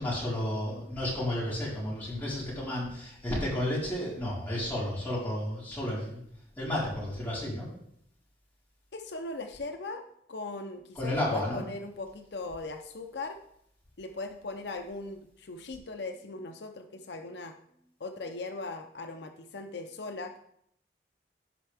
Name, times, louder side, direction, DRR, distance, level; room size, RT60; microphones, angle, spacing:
voice 1, 0.0-6.2 6.6-7.7 10.9-11.6, left 1 dB, 10° left, -8 dB, 4.4 m, -32 dB
voice 2, 8.9-10.0 10.3-13.4 14.0-17.5 18.0-20.4, left 3 dB, 75° left, 5 dB, 0.7 m, -39 dB
16.5 x 5.5 x 3.5 m, 0.70 s
head